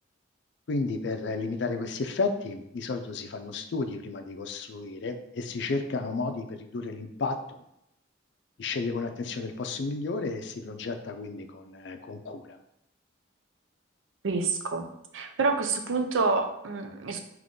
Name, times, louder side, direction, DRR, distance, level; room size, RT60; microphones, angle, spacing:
voice 1, 0.7-7.6 8.6-12.6, left 3 dB, 60° left, 7 dB, 0.4 m, -32 dB
voice 2, 14.2-14.9 15.1-17.2, right 4 dB, 90° right, 5 dB, 0.5 m, -27 dB
3.6 x 3.0 x 3.8 m, 0.81 s
head